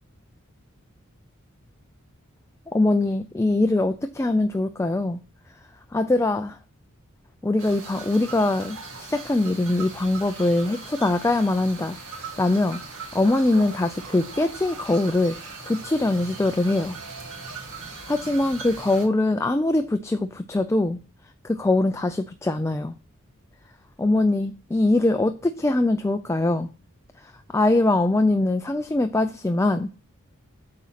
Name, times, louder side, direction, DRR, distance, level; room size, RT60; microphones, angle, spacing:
voice 1, 2.7-5.2 5.9-6.6 7.4-12.0 12.4-12.8 13.1-15.4 15.7-17.0 18.1-21.0 21.4-22.9 24.0-26.7 27.5-29.9, left 2 dB, 15° left, 0.4 m, -22 dB
sound 1, 7.6-19.1, right 4 dB, 70° right, 1.9 m, -39 dB
8.6 x 4.1 x 5.8 m
head